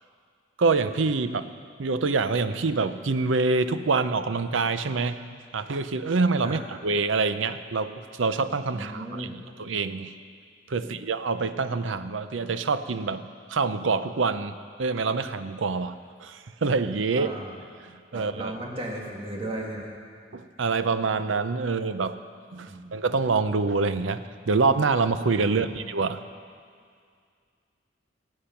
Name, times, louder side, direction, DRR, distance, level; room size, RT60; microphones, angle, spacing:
voice 1, 0.6-1.5 1.8-5.2 5.5-9.3 9.6-10.1 10.7-13.2 13.5-17.3 18.1-18.5 20.3-22.2 22.5-26.2, right 4 dB, 90° right, 11 dB, 0.6 m, -26 dB
voice 2, 8.7-9.4 10.9-11.0 17.2-17.5 18.1-19.9 22.7-22.8 25.4-25.8, right 1 dB, 30° right, -2 dB, 1.8 m, -36 dB
20.0 x 8.6 x 5.8 m, 2.1 s
head